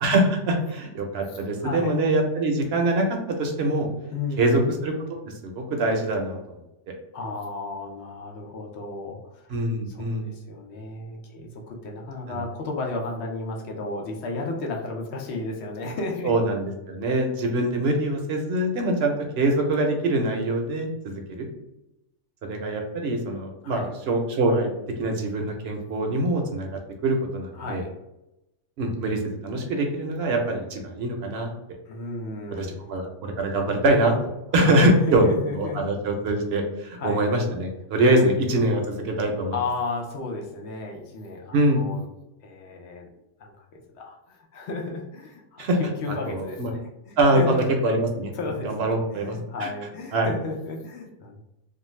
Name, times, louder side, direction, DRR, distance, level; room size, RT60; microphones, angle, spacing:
voice 1, 0.0-3.9 4.4-4.9 5.3-6.4 9.5-10.3 16.2-21.5 22.4-24.7 25.0-26.7 27.0-27.8 28.8-31.5 32.5-39.5 41.5-41.8 45.6-45.8 46.3-46.7 47.2-48.3 48.6-49.7 50.1-50.3, right 1 dB, 65° right, 2 dB, 0.7 m, -24 dB
voice 2, 1.3-2.0 4.1-4.7 7.1-16.3 23.6-23.9 27.5-27.9 31.9-32.9 34.6-35.8 37.0-37.2 38.0-38.2 39.5-42.0 42.4-43.1 43.4-47.7 48.3-51.4, left 3 dB, 70° left, 1 dB, 0.8 m, -33 dB
2.5 x 2.3 x 3.0 m, 0.92 s
omnidirectional pair, 1.2 m